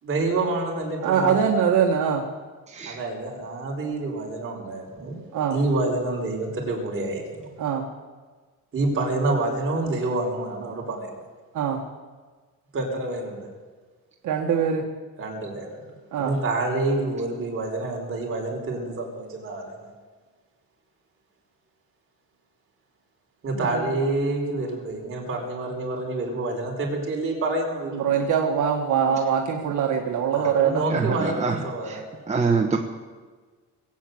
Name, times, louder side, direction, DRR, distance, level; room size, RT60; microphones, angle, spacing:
voice 1, 0.0-1.4 2.8-5.2 5.5-7.5 8.7-11.1 12.7-13.5 15.2-19.9 23.4-28.2 30.3-32.0, right 2 dB, 40° right, -1 dB, 4.6 m, -28 dB
voice 2, 1.0-2.2 5.3-5.6 7.6-7.9 11.5-11.8 14.2-14.9 16.1-16.3 23.5-23.9 27.9-30.8, right 7 dB, 65° right, 1 dB, 1.6 m, -23 dB
voice 3, 2.7-3.0 30.9-31.6 31.8-32.0 32.3-32.8, right 5 dB, 20° right, 2 dB, 1.2 m, -24 dB
20.5 x 8.7 x 7.9 m, 1.4 s
cardioid pair, 135°, 33 cm